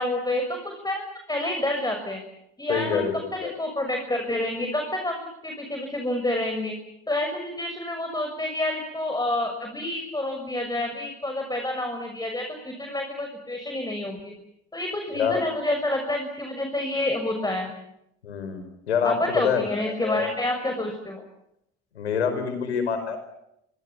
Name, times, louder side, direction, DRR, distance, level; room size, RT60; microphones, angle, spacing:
voice 1, 0.0-2.2 2.6-6.7 7.1-14.3 14.7-17.7 19.0-21.2, left 1 dB, 10° left, 4 dB, 6.4 m, -28 dB
voice 2, 2.7-3.5 15.1-15.4 18.2-20.3 21.9-23.2, left 6 dB, 90° left, 9 dB, 5.0 m, -26 dB
26.5 x 25.0 x 7.2 m, 0.81 s
hypercardioid pair, 55°, 32 cm